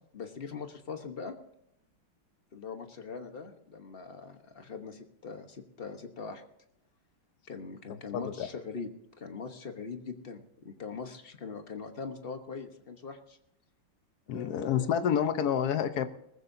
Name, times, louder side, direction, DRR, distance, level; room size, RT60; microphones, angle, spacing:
voice 1, 0.1-1.4 2.5-6.4 7.5-8.9 9.2-13.4 14.3-14.9, left 5 dB, 35° left, 6 dB, 1.0 m, -42 dB
voice 2, 7.9-8.5 14.3-16.1, left 8 dB, 55° left, 10 dB, 1.2 m, -29 dB
19.5 x 15.0 x 2.7 m, 0.80 s
omnidirectional pair, 2.3 m